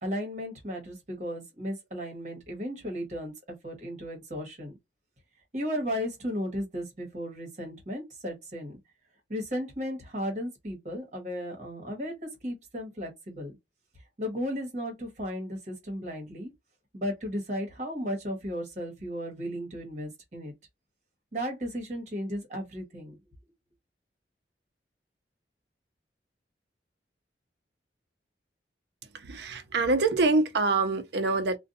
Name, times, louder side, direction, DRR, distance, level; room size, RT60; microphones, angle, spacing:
voice 1, 0.0-3.3 3.6-4.7 5.5-8.8 9.3-13.6 14.2-16.5 16.9-20.5 21.3-23.2, equal, 40° right, 1.2 m, -35 dB
voice 2, 29.1-31.6, right 3 dB, 70° right, 0.5 m, -25 dB
2.5 x 2.2 x 2.6 m
head